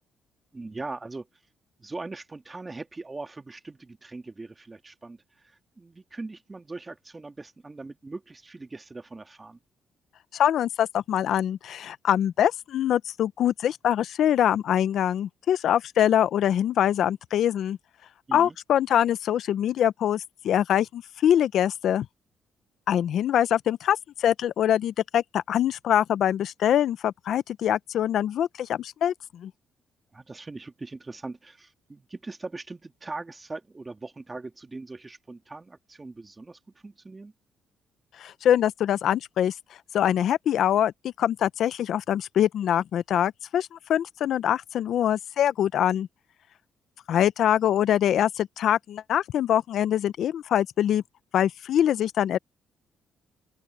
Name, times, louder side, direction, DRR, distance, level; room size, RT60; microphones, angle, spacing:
voice 1, 0.5-1.3 1.8-9.6 18.3-18.6 30.1-37.3, right 3 dB, 25° right, 1.8 m, -40 dB
voice 2, 10.3-17.8 18.3-22.1 22.9-29.5 38.2-39.5 39.9-40.9 41.2-46.1 47.1-51.0 51.3-52.4, left 10 dB, 70° left, 0.6 m, -24 dB
open air
cardioid pair, 90°, 0 cm